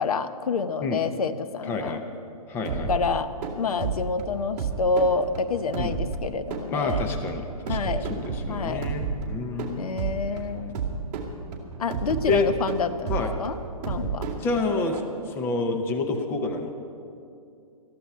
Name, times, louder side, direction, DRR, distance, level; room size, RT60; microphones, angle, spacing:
voice 1, 0.0-2.0 2.9-3.3 3.6-7.0 7.7-8.1 8.5-8.9 9.8-10.8 11.8-13.6 13.9-14.3, left 4 dB, 70° left, 11 dB, 0.9 m, -27 dB
voice 2, 1.6-2.0 2.5-2.9 5.8-5.9 6.7-9.9 12.3-12.5 13.1-13.4 14.4-16.7, left 3 dB, 10° left, 5 dB, 0.7 m, -28 dB
sound 1, 2.7-15.0, right 5 dB, 25° right, 2.3 m, -32 dB
20.0 x 14.0 x 4.4 m, 2.6 s
hypercardioid pair, 160°, 20 cm